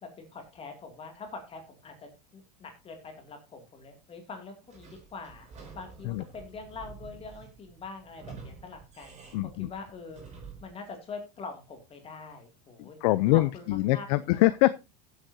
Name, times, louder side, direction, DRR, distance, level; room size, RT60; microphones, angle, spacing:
voice 1, 0.0-13.0 13.3-14.4, left 4 dB, 25° left, 5 dB, 2.4 m, -44 dB
Sliding door / Squeak, 4.7-10.8, right 5 dB, 30° right, 5.1 m, -49 dB
voice 2, 9.3-9.7 12.8-14.7, left 18 dB, 65° left, 16 dB, 0.6 m, -24 dB
15.5 x 8.2 x 2.7 m, 0.26 s
supercardioid pair, 120°, 21 cm